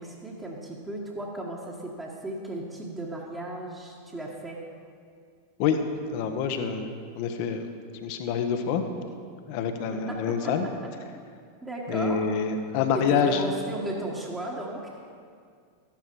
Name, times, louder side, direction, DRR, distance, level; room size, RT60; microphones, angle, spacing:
voice 1, 0.0-4.7 9.9-10.7 11.1-11.2 11.6-12.3 12.9-15.0, right 1 dB, 10° right, -4 dB, 1.6 m, -35 dB
voice 2, 6.1-7.7 8.0-8.8 9.5-10.7 11.9-13.4, left 6 dB, 45° left, 7 dB, 1.2 m, -26 dB
13.5 x 12.0 x 4.7 m, 2.2 s
figure-of-eight pair, 90°, 0 cm